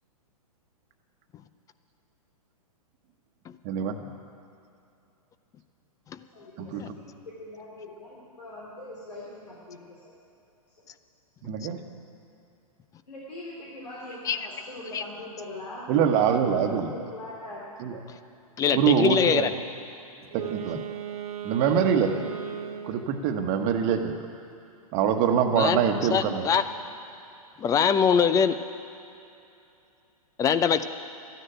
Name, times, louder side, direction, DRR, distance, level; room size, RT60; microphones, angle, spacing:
voice 1, 3.6-4.0 6.6-6.9 11.4-11.8 15.9-16.9 17.8-18.0 18.7-19.5 20.3-20.8 21.4-22.3 22.8-24.2 24.9-26.5, right 7 dB, 35° right, 1.2 m, -24 dB
voice 2, 6.1-10.1 13.1-15.9 16.4-17.6, left 1 dB, 85° left, 3.0 m, -42 dB
voice 3, 18.6-19.5 25.6-25.8 26.1-26.6 27.6-28.6 30.4-30.8, left 7 dB, 15° left, 0.5 m, -22 dB
Wind instrument woodwind instrument, 20.2-23.2, right 9 dB, 70° right, 1.1 m, -36 dB
13.0 x 10.0 x 9.0 m
hypercardioid pair, 115°, 20 cm